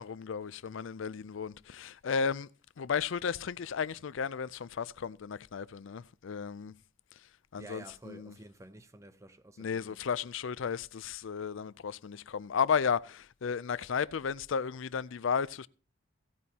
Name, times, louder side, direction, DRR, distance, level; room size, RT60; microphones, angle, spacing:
voice 1, 0.0-2.5 2.8-6.7 7.5-8.3 9.6-15.7, left 6 dB, 65° left, 0.4 m, -34 dB
voice 2, 7.6-10.0, right 2 dB, 15° right, 0.5 m, -51 dB
16.0 x 9.4 x 2.8 m
head